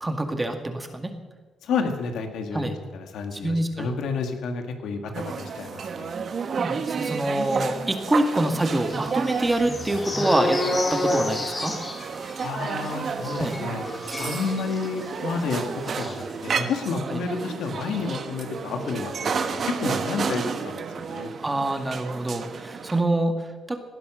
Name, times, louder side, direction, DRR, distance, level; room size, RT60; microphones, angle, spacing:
voice 1, 0.0-1.1 2.5-2.7 3.4-3.9 6.6-10.6 10.9-11.7 13.4-13.5 17.1-17.2 21.4-23.8, right 1 dB, 15° right, 6 dB, 2.1 m, -26 dB
voice 2, 1.6-6.1 12.4-13.8 14.2-15.6 16.0-21.3, left 4 dB, 75° left, 5 dB, 2.1 m, -30 dB
sound 1, 5.1-23.0, right 5 dB, 50° right, 1.2 m, -32 dB
sound 2, 8.4-15.1 15.4-15.6 15.9-16.1, left 1 dB, 25° left, 3.1 m, -30 dB
18.0 x 11.0 x 6.4 m, 1.3 s
cardioid pair, 90°, 0 cm